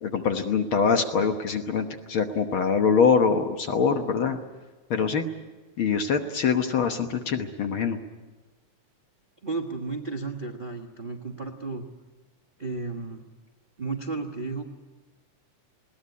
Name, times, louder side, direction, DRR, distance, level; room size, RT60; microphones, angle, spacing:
voice 1, 0.0-4.4 4.9-5.2 5.8-8.0, left 5 dB, 55° left, 6 dB, 1.6 m, -24 dB
voice 2, 9.4-11.9 12.6-13.2 13.8-14.6, right 3 dB, 50° right, 2 dB, 0.6 m, -33 dB
21.0 x 18.0 x 9.6 m, 1.3 s
omnidirectional pair, 3.4 m